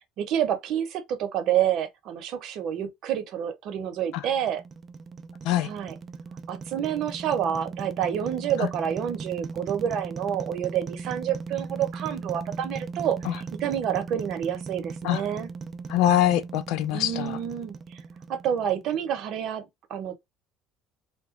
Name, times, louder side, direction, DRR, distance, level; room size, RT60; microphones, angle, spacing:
voice 1, 0.2-4.6 5.6-6.0 6.5-15.5 16.9-18.0 18.3-20.1, right 9 dB, 60° right, 0.8 m, -28 dB
sound 1, 4.0-19.2, right 4 dB, 30° right, 0.4 m, -38 dB
voice 2, 15.9-17.4, left 12 dB, 70° left, 0.4 m, -23 dB
2.9 x 2.2 x 3.7 m
cardioid pair, 125°, 0 cm